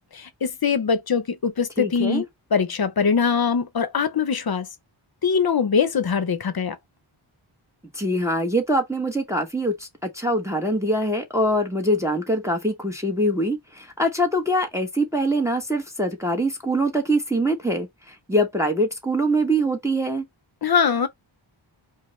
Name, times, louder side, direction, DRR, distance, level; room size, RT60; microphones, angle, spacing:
voice 1, 0.1-2.2 2.5-4.7 5.2-6.8 20.6-21.1, left 6 dB, 50° left, 0.7 m, -22 dB
voice 2, 1.8-2.3 7.9-20.3, right 1 dB, 5° right, 1.0 m, -23 dB
5.0 x 2.1 x 3.2 m
wide cardioid pair, 60°, 48 cm